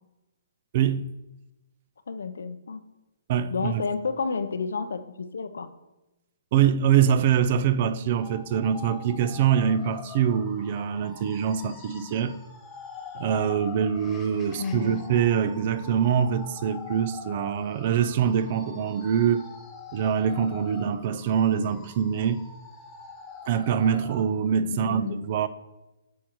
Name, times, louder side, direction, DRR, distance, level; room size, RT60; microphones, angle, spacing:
voice 1, 2.1-2.8 3.5-5.7 14.5-15.0 24.7-25.2, left 4 dB, 90° left, 0.6 m, -30 dB
voice 2, 3.3-3.8 6.5-12.4 13.1-19.5 19.9-22.4 23.5-25.5, right 8 dB, 35° right, 0.3 m, -24 dB
sound 1, 8.1-24.2, left 5 dB, 10° left, 0.6 m, -44 dB
8.5 x 6.4 x 3.0 m
hypercardioid pair, 165°, 0 cm